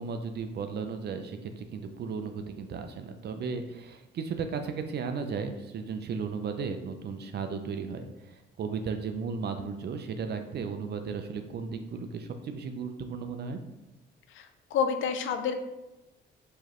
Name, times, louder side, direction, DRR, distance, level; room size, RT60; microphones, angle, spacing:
voice 1, 0.0-13.6, right 5 dB, 55° right, 7 dB, 0.5 m, -35 dB
voice 2, 14.7-15.6, left 6 dB, 80° left, 7 dB, 0.5 m, -28 dB
4.6 x 3.1 x 3.0 m, 0.97 s
cardioid pair, 90°, 20 cm